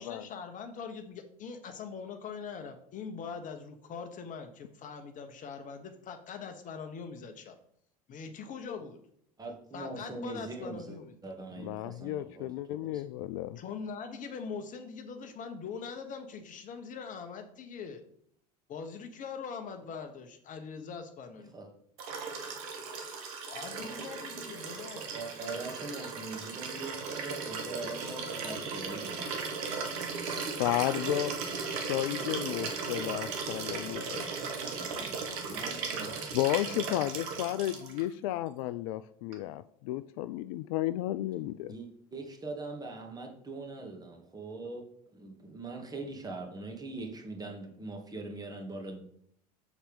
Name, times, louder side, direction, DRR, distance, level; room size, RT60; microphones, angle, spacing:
voice 1, 0.0-7.6 8.1-9.0 9.7-11.1 13.6-18.0 18.7-21.5 23.5-25.1, left 5 dB, 45° left, 7 dB, 1.1 m, -42 dB
voice 2, 9.4-13.0 21.5-21.7 25.1-29.5 34.6-36.2 41.7-49.0, right 3 dB, 20° right, 1 dB, 2.1 m, -42 dB
voice 3, 11.6-13.6 30.6-31.3 31.9-34.2 36.3-41.7, left 14 dB, 65° left, 14 dB, 0.4 m, -33 dB
Liquid, 22.0-38.0 39.3-39.4, right 5 dB, 70° right, 1.5 m, -37 dB
7.2 x 4.3 x 5.2 m, 0.67 s
hypercardioid pair, 75°, 19 cm